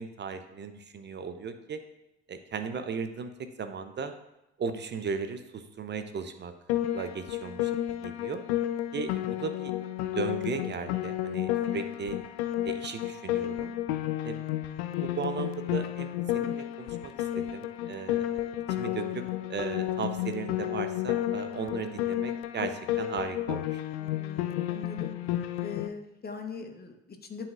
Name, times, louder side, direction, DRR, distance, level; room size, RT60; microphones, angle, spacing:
voice 1, 0.0-1.8 2.3-3.3 3.6-4.1 4.6-6.5 6.9-7.7 8.0-8.4 8.9-9.7 10.1-12.2 12.6-13.8 14.2-14.4 15.0-19.2 19.5-23.8, right 5 dB, 35° right, 9 dB, 0.6 m, -36 dB
Piano, 6.7-25.9, left 13 dB, 70° left, 0.5 m, -32 dB
voice 2, 24.0-25.1 25.6-27.5, left 6 dB, 30° left, 4 dB, 1.1 m, -41 dB
10.5 x 4.2 x 2.5 m, 0.90 s
figure-of-eight pair, 50°, 33 cm